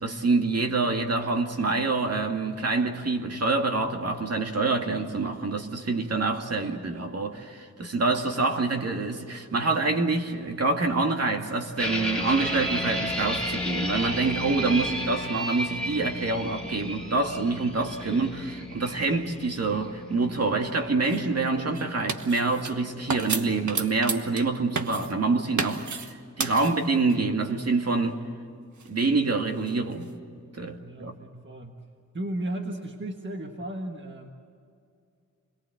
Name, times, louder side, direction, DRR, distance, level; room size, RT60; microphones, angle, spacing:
voice 1, 0.0-26.1 26.4-28.2 28.9-30.1 30.5-31.1, right 3 dB, 55° right, 2.2 m, -26 dB
sound 1, 11.8-23.9, equal, 5° left, 3.0 m, -34 dB
sound 2, 21.0-21.2 21.7-22.8 23.1-24.5 24.8-25.1 25.6-26.1 26.4-27.2 28.8-30.2, right 5 dB, 70° right, 1.4 m, -33 dB
voice 2, 30.8-31.8 32.1-34.3, right 1 dB, 40° right, 1.6 m, -35 dB
28.0 x 21.5 x 7.8 m
wide cardioid pair, 110°, 30 cm